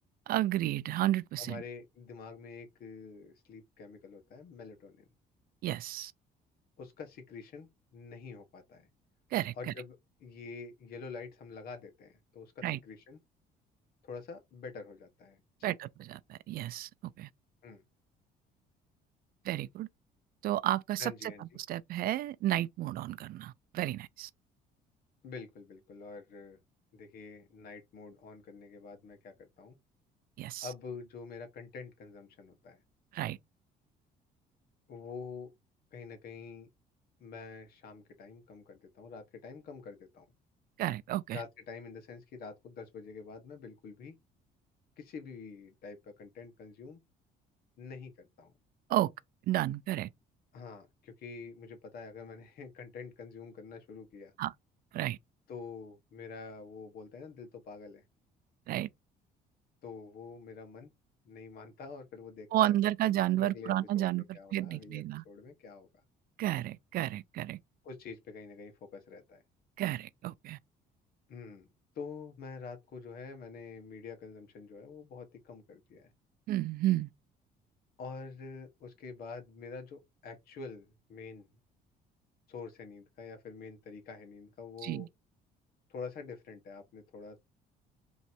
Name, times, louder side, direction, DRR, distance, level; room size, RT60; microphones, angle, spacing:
voice 1, 0.3-1.6 5.6-6.1 9.3-9.7 12.6-12.8 15.6-17.3 19.5-19.9 20.4-21.3 21.7-24.3 30.4-30.7 33.1-33.4 40.8-41.4 48.9-49.1 49.5-50.1 54.4-54.5 54.9-55.2 58.7-58.9 62.5-65.2 66.4-67.6 69.8-70.6 76.5-77.1 84.8-85.1, right 14 dB, 60° right, 0.4 m, -32 dB
voice 2, 1.4-5.0 6.8-8.9 9.5-13.2 14.0-15.8 17.6-17.8 21.0-21.6 25.2-26.6 26.9-29.8 30.6-32.8 34.9-35.5 35.9-36.7 37.2-40.2 41.3-44.2 45.0-47.0 47.8-48.5 50.5-54.3 55.5-58.0 59.8-60.9 61.2-65.9 67.8-69.4 71.3-71.7 71.9-76.1 78.0-81.5 82.5-85.1 85.9-87.4, left 4 dB, 65° left, 1.3 m, -47 dB
3.1 x 2.7 x 4.3 m
cardioid pair, 110°, 17 cm